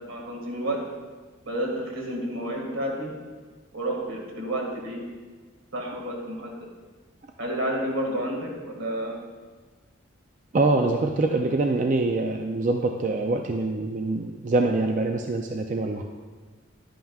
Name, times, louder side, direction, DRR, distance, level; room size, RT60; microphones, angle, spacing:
voice 1, 0.1-0.8 1.5-3.1 3.7-5.0 5.7-6.5 7.4-9.2, right 1 dB, 80° right, 0 dB, 1.9 m, -30 dB
voice 2, 10.5-16.0, right 2 dB, 40° right, 3 dB, 0.4 m, -24 dB
10.5 x 9.1 x 2.4 m, 1.4 s
head